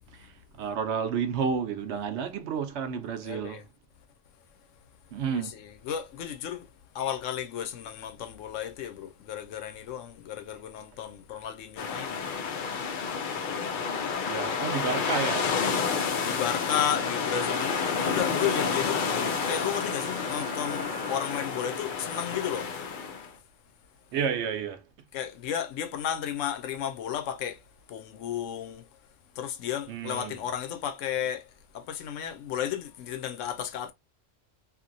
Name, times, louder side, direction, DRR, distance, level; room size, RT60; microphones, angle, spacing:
voice 1, 0.6-3.6 5.1-5.6 14.3-15.5 24.1-24.8 29.9-30.3, right 6 dB, 70° right, 0.8 m, -31 dB
voice 2, 3.2-3.6 5.3-6.7 6.9-12.2 14.2-14.4 16.0-19.1 19.5-22.7 25.1-29.0 29.3-33.9, left 9 dB, 85° left, 0.9 m, -33 dB
sound 1, 11.8-23.3, left 5 dB, 55° left, 0.6 m, -30 dB
Wind instrument woodwind instrument, 16.2-21.4, right 5 dB, 90° right, 1.1 m, -43 dB
2.8 x 2.6 x 2.5 m
omnidirectional pair, 1.3 m